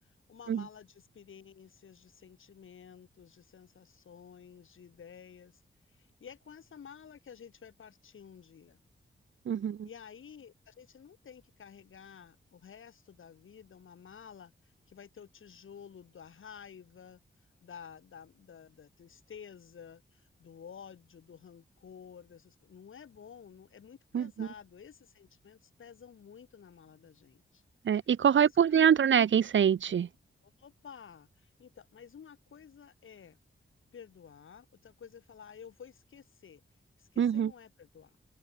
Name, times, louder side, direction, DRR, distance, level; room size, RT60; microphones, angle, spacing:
voice 1, 0.0-5.6 5.9-8.8 9.8-14.5 14.9-17.2 17.6-27.6 28.4-28.9 30.4-33.4 33.9-36.6 37.0-38.2, left 7 dB, 80° left, 5.2 m, -52 dB
voice 2, 9.5-9.9 24.1-24.5 27.8-30.1 37.2-37.5, right 8 dB, 70° right, 0.9 m, -25 dB
open air
wide cardioid pair, 95°, 20 cm